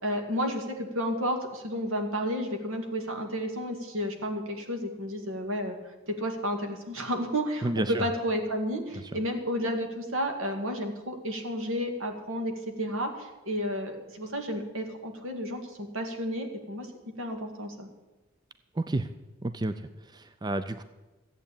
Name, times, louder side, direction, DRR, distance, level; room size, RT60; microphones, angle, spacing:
voice 1, 0.0-5.7 6.1-12.5 12.8-16.9 17.2-17.9, equal, 75° right, 4 dB, 2.2 m, -31 dB
voice 2, 7.6-8.0 18.8-19.1 19.4-20.8, right 2 dB, 20° right, 11 dB, 0.4 m, -31 dB
14.5 x 8.3 x 8.8 m, 1.1 s
head